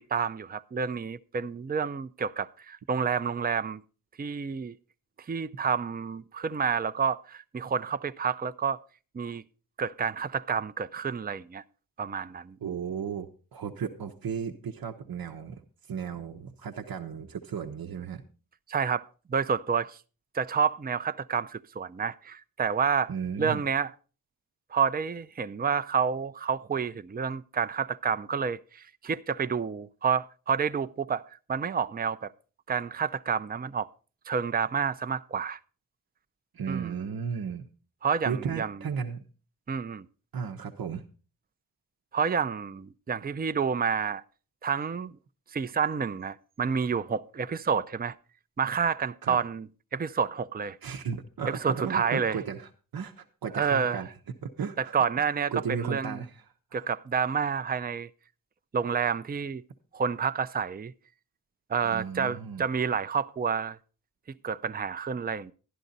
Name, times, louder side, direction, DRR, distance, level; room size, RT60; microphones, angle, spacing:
voice 1, 0.0-3.8 4.2-4.8 5.3-8.8 9.1-9.4 9.8-11.6 12.0-12.6 18.7-20.0 20.3-23.1 23.4-23.9 24.7-31.2 31.5-32.3 32.7-33.9 34.3-35.6 36.7-37.0 38.0-38.8 39.7-40.0 42.1-44.2 44.6-45.2 45.5-48.1 48.6-50.8 51.5-52.4 53.5-54.0 54.8-56.2 56.7-58.1 58.7-59.6 59.9-60.9 61.7-63.8 64.4-65.5, right 6 dB, 25° right, 0.5 m, -29 dB
voice 2, 12.6-15.6 15.9-18.2 23.1-23.6 36.5-37.7 38.3-39.2 40.3-41.0 49.2-49.4 50.8-54.1 54.4-54.9 55.5-56.4 61.8-62.6, right 6 dB, 85° right, 0.9 m, -35 dB
11.5 x 11.0 x 4.0 m
wide cardioid pair, 65°, 35 cm